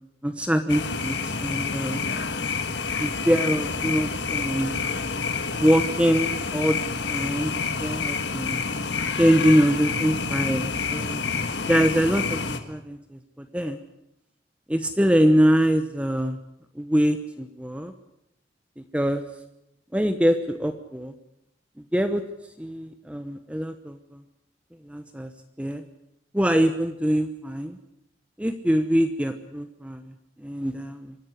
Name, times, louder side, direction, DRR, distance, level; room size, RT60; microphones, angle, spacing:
voice 1, 0.2-2.0 3.0-4.7 5.5-6.8 7.1-7.5 7.8-8.6 9.1-11.3 11.6-13.8 14.7-16.4 16.7-17.9 18.8-19.2 19.9-21.1 21.9-22.2 22.6-24.2 24.8-25.3 25.6-25.8 26.3-27.8 28.4-31.2, equal, 5° right, 8 dB, 0.9 m, -24 dB
sound 1, 0.7-12.6, left 4 dB, 85° left, 1.7 m, -28 dB
25.0 x 12.0 x 9.9 m, 0.85 s
head